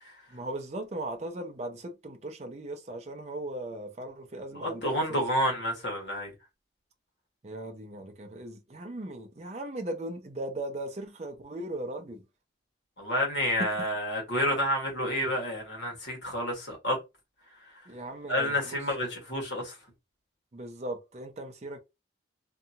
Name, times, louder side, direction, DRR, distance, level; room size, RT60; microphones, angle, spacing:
voice 1, 0.3-5.2 7.4-12.2 13.6-13.7 17.9-19.1 20.5-21.8, right 1 dB, 35° right, 0.5 m, -38 dB
voice 2, 4.5-6.3 13.0-17.0 18.3-19.7, equal, 70° left, 1.3 m, -29 dB
2.8 x 2.3 x 2.6 m
head